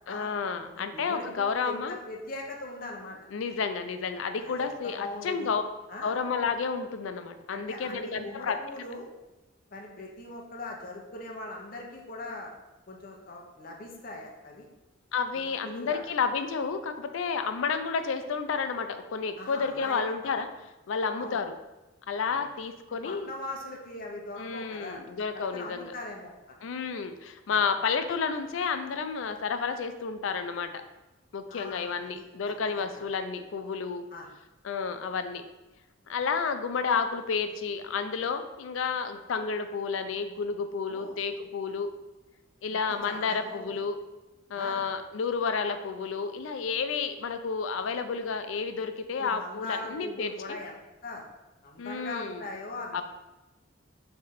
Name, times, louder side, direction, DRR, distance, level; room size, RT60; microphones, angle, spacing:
voice 1, 0.1-2.0 3.3-5.6 6.0-8.6 15.1-20.5 20.9-21.5 22.1-23.3 24.4-25.9 26.6-30.8 31.3-34.1 34.6-35.4 36.1-41.9 42.6-44.0 44.5-50.6 51.8-52.4 52.9-53.0, left 5 dB, 80° left, 9 dB, 0.4 m, -31 dB
voice 2, 0.7-3.2 4.4-5.5 5.9-6.2 7.5-9.1 9.7-12.5 12.9-14.6 15.3-16.0 19.4-20.4 21.2-21.4 22.3-22.4 22.9-25.0 25.3-26.3 27.5-27.7 31.5-33.0 34.1-34.3 40.9-41.2 42.7-42.8 43.1-43.7 44.5-44.9 49.2-51.3 51.6-53.0, left 2 dB, 45° left, 0 dB, 0.8 m, -41 dB
3.6 x 3.4 x 4.3 m, 1.1 s
head